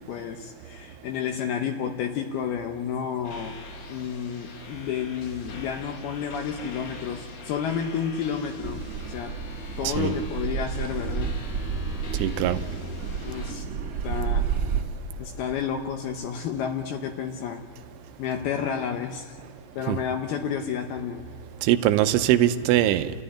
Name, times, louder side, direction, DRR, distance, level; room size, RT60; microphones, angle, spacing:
voice 1, 0.1-3.6 3.9-9.4 9.8-11.4 13.2-13.7 14.0-14.5 15.2-17.7 18.2-19.4 19.8-21.3, left 7 dB, 75° left, 4 dB, 2.5 m, -31 dB
sound 1, 3.2-13.5, left 4 dB, 55° left, 2.8 m, -44 dB
Car passing by / Accelerating revving vroom, 8.6-14.8, right 6 dB, 50° right, 2.4 m, -30 dB
voice 2, 12.2-12.6 19.9-20.0 21.6-23.1, right 13 dB, 85° right, 10 dB, 3.2 m, -22 dB
29.5 x 14.5 x 9.9 m, 2.4 s
omnidirectional pair, 5.4 m